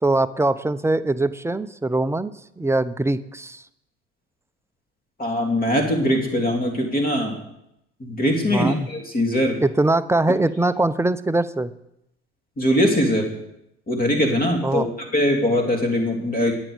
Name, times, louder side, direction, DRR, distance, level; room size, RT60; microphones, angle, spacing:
voice 1, 0.0-3.6 8.5-8.9 9.6-11.7 14.6-14.9, right 2 dB, 10° right, 13 dB, 0.6 m, -22 dB
voice 2, 5.2-7.4 8.0-9.6 12.6-13.3 13.9-14.8 15.1-16.5, equal, 25° left, 3 dB, 3.2 m, -21 dB
21.0 x 7.4 x 5.1 m, 0.82 s
figure-of-eight pair, 65°, 34 cm